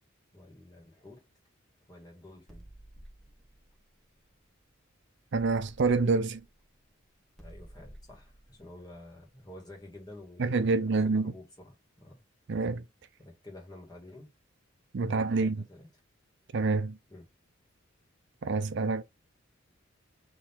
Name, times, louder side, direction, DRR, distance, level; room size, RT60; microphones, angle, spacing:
voice 1, 0.3-1.2 1.9-2.7 7.4-12.2 13.2-14.3 15.0-15.9 17.1-17.2, left 1 dB, 20° left, 1.8 m, -50 dB
sound 1, 2.5-4.8 5.3-10.0, right 1 dB, ahead, 1.2 m, -53 dB
voice 2, 5.3-6.4 10.4-11.3 12.5-12.8 14.9-15.6 16.5-17.0 18.4-19.0, right 4 dB, 60° right, 0.5 m, -27 dB
3.7 x 3.0 x 4.4 m
head